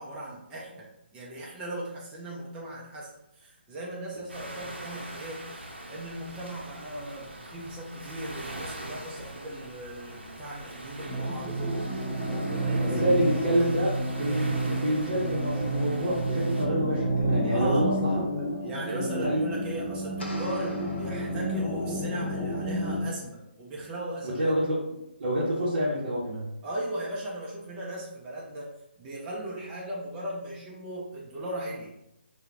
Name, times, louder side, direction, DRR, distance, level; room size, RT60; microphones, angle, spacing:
voice 1, 0.0-11.7 12.4-13.1 13.5-13.9 17.5-17.9 18.6-24.5 26.6-31.9, right 1 dB, 15° right, -5 dB, 0.4 m, -38 dB
sound 1, 4.3-16.7, right 1 dB, 90° right, 0.6 m, -42 dB
sound 2, 11.1-23.0, right 1 dB, 5° left, 1.1 m, -30 dB
voice 2, 12.9-18.5 18.9-19.6 24.2-26.5, equal, 45° right, -8 dB, 0.7 m, -28 dB
sound 3, 20.2-22.1, left 1 dB, 85° left, 0.7 m, -42 dB
2.2 x 2.1 x 3.1 m, 0.85 s
figure-of-eight pair, 155°, 6 cm